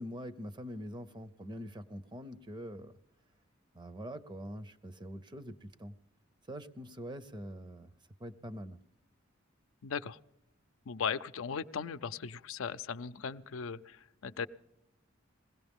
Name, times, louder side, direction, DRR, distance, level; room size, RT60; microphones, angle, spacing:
voice 1, 0.0-3.0 3.7-5.9 6.5-7.9 8.2-8.8, equal, 25° right, 12 dB, 0.6 m, -44 dB
voice 2, 9.8-10.2 10.9-14.5, left 6 dB, 90° left, 11 dB, 0.5 m, -38 dB
21.0 x 17.0 x 3.6 m, 0.86 s
head